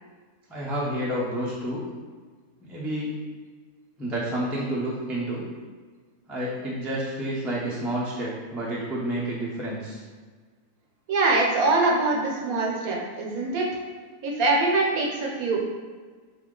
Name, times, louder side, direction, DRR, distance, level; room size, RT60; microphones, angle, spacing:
voice 1, 0.5-1.8 2.6-3.1 4.0-5.4 6.3-10.0, right 1 dB, ahead, -6 dB, 0.3 m, -29 dB
voice 2, 11.1-13.7 14.2-15.6, right 3 dB, 70° right, -2 dB, 1.1 m, -23 dB
3.9 x 2.8 x 3.7 m, 1.5 s
omnidirectional pair, 1.7 m